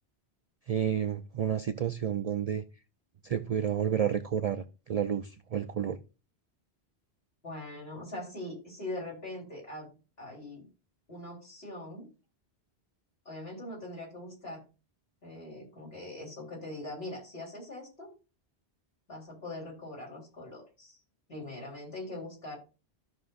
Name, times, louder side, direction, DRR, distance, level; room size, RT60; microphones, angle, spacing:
voice 1, 0.7-2.6 3.2-6.0, right 8 dB, 55° right, 0.4 m, -30 dB
voice 2, 7.4-9.9 10.2-10.6 11.1-12.1 13.3-14.6 15.2-18.1 19.1-21.0 21.3-22.6, left 1 dB, 65° left, 3.8 m, -42 dB
13.5 x 6.0 x 2.5 m
omnidirectional pair, 1.1 m